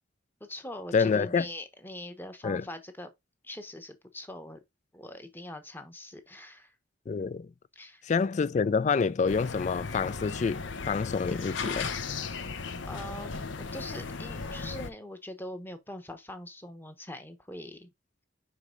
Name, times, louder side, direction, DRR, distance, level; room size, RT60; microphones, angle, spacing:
voice 1, 0.4-3.1 3.4-4.6 4.9-6.7 7.7-8.0 12.8-17.9, left 1 dB, 10° left, 1.0 m, -42 dB
voice 2, 0.9-1.5 2.4-2.6 7.1-7.5 8.0-11.9, left 5 dB, 40° left, 0.3 m, -27 dB
sound 1, 9.3-14.9, left 4 dB, 75° left, 0.8 m, -36 dB
5.3 x 4.8 x 3.7 m
head